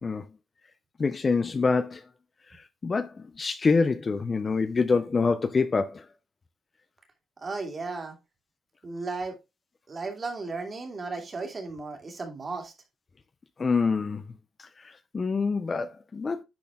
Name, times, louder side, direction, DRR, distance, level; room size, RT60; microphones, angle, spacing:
voice 1, 1.0-2.0 2.5-6.0 13.6-14.2 14.6-16.4, left 4 dB, 30° left, 0.5 m, -26 dB
voice 2, 7.4-8.2 8.8-9.3 9.9-12.7, right 3 dB, 30° right, 2.4 m, -35 dB
10.5 x 4.3 x 3.6 m
cardioid pair, 140°, 0 cm